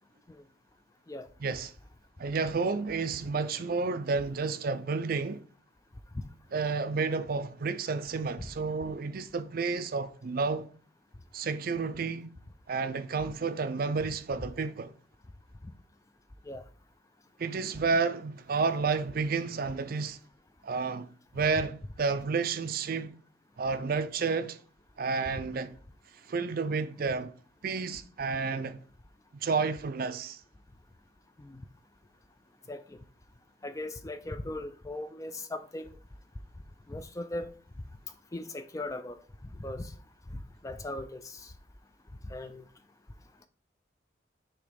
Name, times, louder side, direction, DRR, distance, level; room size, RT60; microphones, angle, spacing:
voice 1, 1.4-1.7 2.2-5.4 6.5-10.7 11.3-12.3 12.7-14.9 17.4-20.2 20.6-21.1 21.3-23.1 23.6-24.6 25.0-25.7 26.3-27.3 27.6-28.8 29.4-30.4, right 4 dB, 50° right, 0.4 m, -31 dB
voice 2, 32.7-33.0 33.6-35.9 36.9-37.5 38.3-39.2 39.6-39.9 40.6-41.5 42.3-42.6, left 2 dB, 15° left, 0.4 m, -38 dB
6.7 x 3.0 x 5.0 m
head